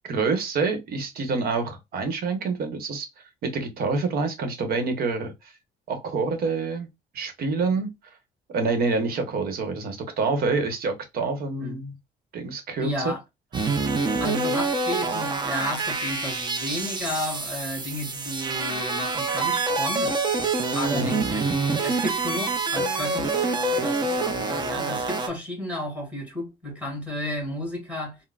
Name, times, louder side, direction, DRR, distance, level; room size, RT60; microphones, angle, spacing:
voice 1, 0.1-3.1 3.4-5.3 5.9-6.9 7.1-7.9 8.5-12.0 12.3-13.1 20.9-21.1, right 4 dB, 65° right, 1.1 m, -27 dB
voice 2, 12.8-13.2 14.2-23.4 23.6-28.2, left 1 dB, 10° right, 1.8 m, -33 dB
sound 1, 13.5-25.3, right 3 dB, 25° right, 0.7 m, -26 dB
3.7 x 2.1 x 2.3 m
cardioid pair, 110°, 17 cm